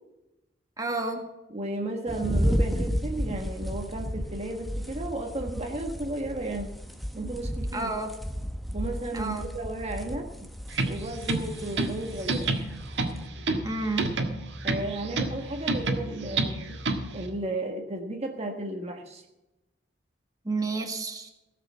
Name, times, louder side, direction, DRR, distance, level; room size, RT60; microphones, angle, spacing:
voice 1, 0.8-1.3 7.7-8.1 9.1-9.5 13.6-14.1 20.4-21.3, right 3 dB, 20° right, 3 dB, 1.5 m, -30 dB
voice 2, 1.5-6.7 7.1-7.9 8.7-10.3 10.9-12.5 14.6-16.8 17.1-19.2, right 2 dB, 35° right, 3 dB, 1.3 m, -34 dB
sound 1, 2.1-13.3, equal, ahead, 1.0 m, -33 dB
sound 2, 10.7-17.3, right 2 dB, 80° right, 1.6 m, -30 dB
17.0 x 6.8 x 7.4 m, 0.96 s
head